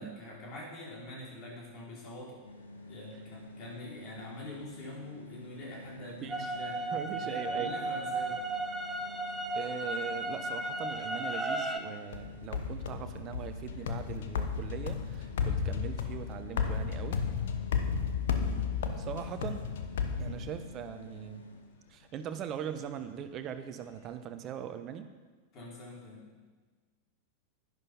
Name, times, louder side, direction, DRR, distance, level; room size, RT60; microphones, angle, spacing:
voice 1, 0.0-2.4 2.9-8.4 13.8-13.9 20.1-20.4 25.5-26.3, left 1 dB, 35° left, -3 dB, 4.6 m, -45 dB
sound 1, 2.4-21.7, left 1 dB, 75° left, 1.5 m, -49 dB
sound 2, 6.3-11.8, right 2 dB, 10° right, 1.1 m, -34 dB
voice 2, 6.9-7.7 9.5-17.2 19.0-19.6 20.2-21.5 21.9-25.1, right 9 dB, 35° right, 9 dB, 1.0 m, -40 dB
sound 3, 12.1-20.9, left 6 dB, 60° left, 1.0 m, -33 dB
11.0 x 11.0 x 5.5 m, 1.4 s
figure-of-eight pair, 90°, 0 cm